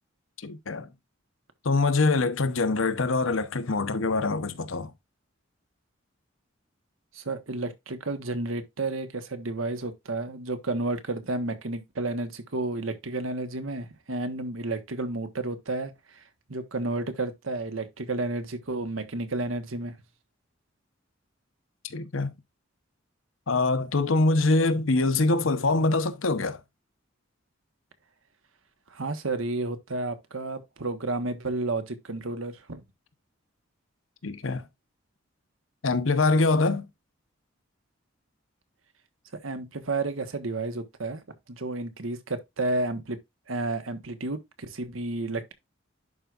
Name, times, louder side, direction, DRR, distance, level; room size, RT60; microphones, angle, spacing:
voice 1, 0.4-0.9 1.6-4.9 21.8-22.3 23.5-26.6 34.2-34.6 35.8-36.9, left 3 dB, 80° left, 0.9 m, -24 dB
voice 2, 7.1-16.2 16.5-19.9 28.9-32.8 39.4-41.2 41.5-43.2 43.5-45.5, right 2 dB, 85° right, 1.3 m, -31 dB
11.0 x 4.7 x 2.5 m
head